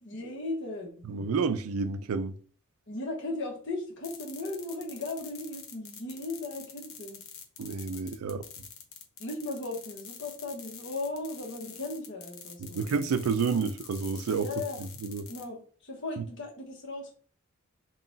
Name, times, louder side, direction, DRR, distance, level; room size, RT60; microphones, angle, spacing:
voice 1, 0.0-1.1 2.9-7.2 9.2-12.9 14.4-14.8 15.3-17.1, left 2 dB, 60° left, 1.2 m, -37 dB
voice 2, 1.1-2.4 7.6-8.4 12.6-14.5 15.0-15.3, right 5 dB, 85° right, 0.4 m, -29 dB
sound 1, 4.0-15.5, left 7 dB, 75° left, 0.7 m, -46 dB
3.8 x 2.4 x 3.8 m
head